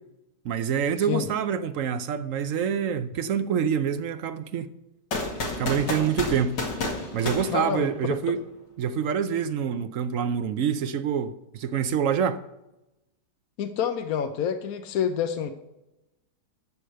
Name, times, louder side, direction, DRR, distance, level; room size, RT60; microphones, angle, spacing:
voice 1, 0.4-4.7 5.6-6.6 7.1-8.4 8.8-12.4, right 7 dB, 65° right, 0.8 m, -26 dB
sound 1, 5.1-8.3, left 2 dB, 80° left, 2.7 m, -31 dB
voice 2, 7.5-8.2 13.6-15.5, left 8 dB, 65° left, 1.1 m, -27 dB
13.5 x 5.0 x 7.8 m
omnidirectional pair, 1.9 m